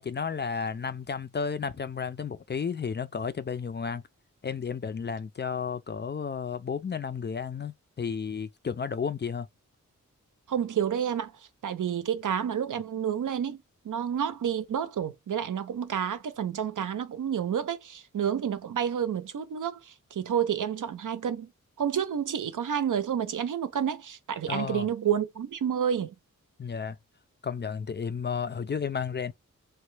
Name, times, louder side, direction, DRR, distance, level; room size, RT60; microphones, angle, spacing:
voice 1, 0.0-4.0 4.4-9.5 24.5-24.9 26.6-27.0 27.4-29.3, left 6 dB, 35° left, 0.4 m, -32 dB
voice 2, 10.5-11.3 11.6-21.5 21.8-26.1, right 8 dB, 75° right, 0.6 m, -29 dB
3.0 x 2.2 x 3.2 m
cardioid pair, 50°, 32 cm